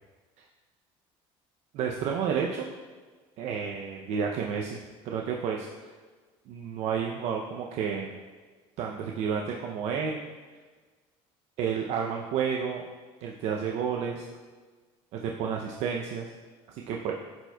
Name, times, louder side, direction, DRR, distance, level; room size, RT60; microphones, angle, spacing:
voice 1, 1.7-2.7 3.4-4.8 5.1-5.7 6.5-8.2 8.8-10.3 11.6-12.8 13.2-14.3 15.1-16.3 16.7-17.1, right 7 dB, 60° right, 1 dB, 0.5 m, -31 dB
10.5 x 4.4 x 2.2 m, 1.4 s
cardioid pair, 115°, 12 cm